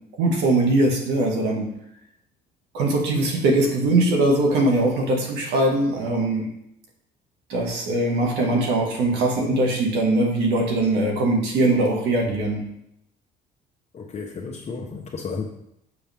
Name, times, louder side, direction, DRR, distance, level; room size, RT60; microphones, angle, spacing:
voice 1, 0.2-1.7 2.7-6.5 7.5-12.6, right 2 dB, 85° right, 1 dB, 1.9 m, -21 dB
voice 2, 13.9-15.5, left 4 dB, 40° left, -1 dB, 1.1 m, -33 dB
7.0 x 6.9 x 3.6 m, 0.79 s
cardioid pair, 110°, 17 cm